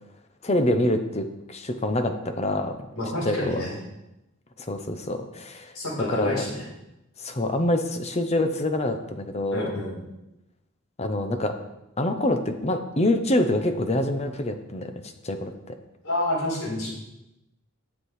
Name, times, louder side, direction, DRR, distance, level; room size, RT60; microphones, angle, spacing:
voice 1, 0.4-2.8 3.2-3.6 4.7-5.7 6.1-6.4 7.2-9.7 11.0-11.5 12.0-14.9 15.2-15.8, left 1 dB, 30° left, 7 dB, 0.8 m, -26 dB
voice 2, 3.0-3.8 5.7-6.6 9.5-10.0 16.0-16.9, left 1 dB, 85° left, -5 dB, 4.4 m, -28 dB
9.6 x 7.6 x 4.8 m, 0.90 s
head